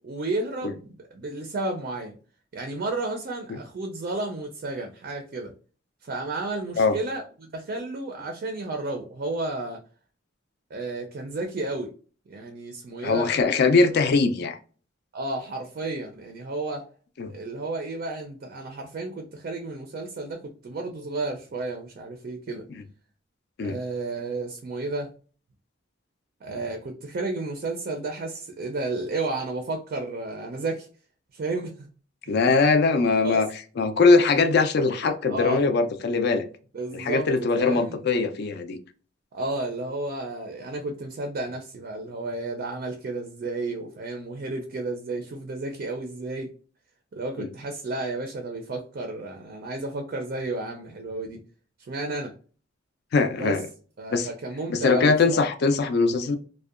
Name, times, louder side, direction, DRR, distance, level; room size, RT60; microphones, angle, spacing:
voice 1, 0.0-2.1 2.5-5.5 6.0-7.2 7.5-9.8 10.7-11.9 12.3-13.3 15.1-16.8 17.3-22.6 23.6-25.1 26.4-30.9 31.3-31.9 32.3-32.4 33.2-33.4 35.3-35.6 36.7-38.0 39.3-46.5 47.1-51.4 51.9-52.3 53.3-53.5 54.0-55.4, right 2 dB, 50° right, 0.4 m, -32 dB
voice 2, 13.0-14.6 17.2-17.3 22.7-22.8 23.6-23.8 32.3-33.5 33.8-36.5 36.9-38.8 47.4-47.5 53.1-53.7 54.1-54.3 54.7-56.4, left 4 dB, 55° left, 0.4 m, -21 dB
2.6 x 2.1 x 2.4 m
head